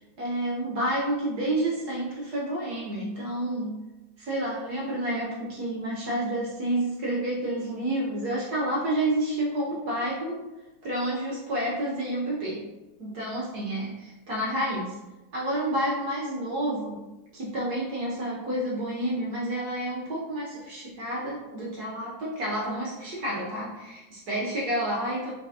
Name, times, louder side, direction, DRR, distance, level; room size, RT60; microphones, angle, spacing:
voice 1, 0.0-3.8 4.2-10.4 10.8-12.7 13.0-15.0 15.3-17.1 17.3-25.3, right 1 dB, 65° right, -5 dB, 1.1 m, -29 dB
4.0 x 3.5 x 2.7 m, 1.1 s
omnidirectional pair, 2.1 m